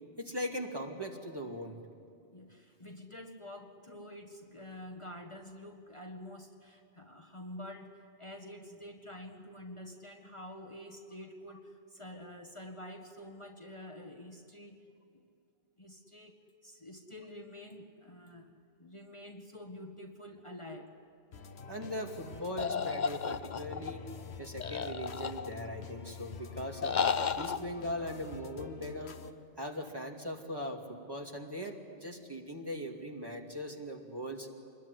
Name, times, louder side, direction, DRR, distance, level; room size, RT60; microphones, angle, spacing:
voice 1, 0.2-1.8 21.7-24.0 24.4-27.0 27.4-29.2 29.6-34.5, equal, 20° right, 1 dB, 2.5 m, -40 dB
voice 2, 2.3-14.8 15.1-15.2 15.8-16.3 16.6-20.9, left 1 dB, 30° left, 2 dB, 1.7 m, -48 dB
sound 1, 21.3-29.3, left 6 dB, 85° left, 1.3 m, -47 dB
sound 2, 22.6-23.9 24.6-25.7 26.8-27.6, left 6 dB, 50° left, 0.8 m, -33 dB
26.5 x 21.0 x 9.9 m, 2.5 s
omnidirectional pair, 1.1 m